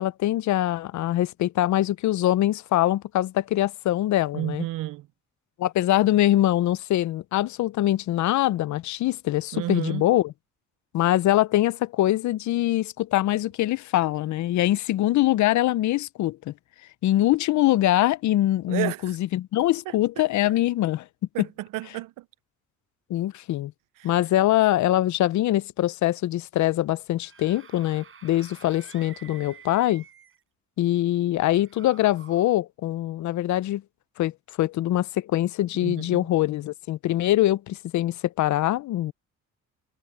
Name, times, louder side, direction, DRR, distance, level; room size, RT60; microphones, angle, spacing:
voice 1, 0.0-4.6 5.6-10.3 10.9-16.5 17.0-21.1 21.4-21.5 23.1-23.7 24.0-30.0 30.8-33.8 34.2-34.3 34.6-39.1, left 14 dB, 60° left, 0.5 m, -23 dB
voice 2, 4.3-5.1 9.5-10.1 18.7-19.2 19.9-20.2 21.3-22.2 24.0-24.2 35.8-36.3, right 16 dB, 75° right, 0.5 m, -32 dB
Screaming / Screech, 27.0-30.4 31.4-32.5, right 7 dB, 40° right, 5.2 m, -50 dB
cardioid pair, 155°, 32 cm